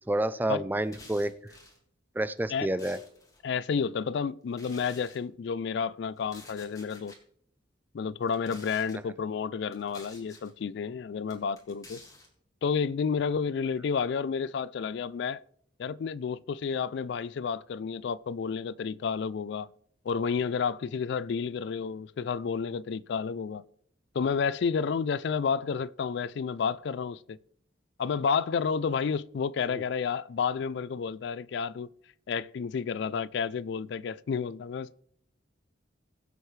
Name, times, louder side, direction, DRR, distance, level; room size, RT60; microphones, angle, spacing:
voice 1, 0.1-1.5 2.2-3.0 29.7-29.8, right 1 dB, 10° right, 0.4 m, -29 dB
sound 1, 0.8-1.8 2.4-3.4 4.5-5.2 6.2-7.2 8.2-9.0 9.7-10.5 11.3-12.3, left 2 dB, 20° left, 2.1 m, -51 dB
voice 2, 3.4-7.1 7.9-12.0 12.6-15.4 15.8-19.7 20.1-23.6 24.1-27.4 28.0-31.9 32.3-34.9, left 6 dB, 60° left, 0.3 m, -31 dB
20.5 x 7.9 x 3.2 m
head